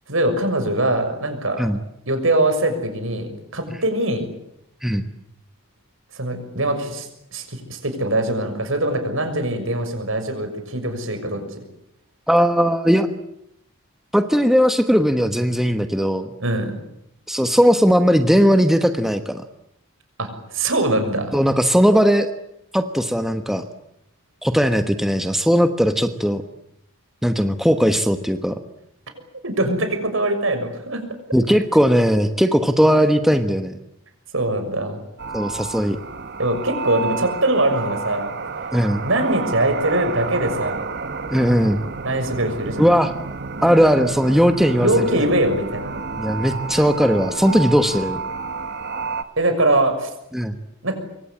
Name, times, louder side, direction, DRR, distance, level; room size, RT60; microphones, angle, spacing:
voice 1, 0.1-1.6 2.1-4.3 6.1-11.6 16.4-16.8 20.2-21.3 29.4-31.0 34.3-35.0 36.4-38.3 39.0-40.8 42.0-42.8 44.8-45.9 49.4-50.1 50.8-51.0, right 1 dB, 70° right, 7 dB, 6.5 m, -22 dB
voice 2, 12.3-13.1 14.1-16.3 17.3-19.4 21.3-22.3 22.7-23.6 24.4-26.4 27.2-28.6 31.3-33.7 35.3-36.0 38.7-39.0 41.3-41.8 42.8-43.1 43.6-45.3 46.2-48.2 50.3-50.6, equal, ahead, 7 dB, 1.2 m, -18 dB
sound 1, 35.2-49.2, right 4 dB, 55° right, 1.4 m, -30 dB
26.0 x 24.0 x 8.7 m, 0.80 s
head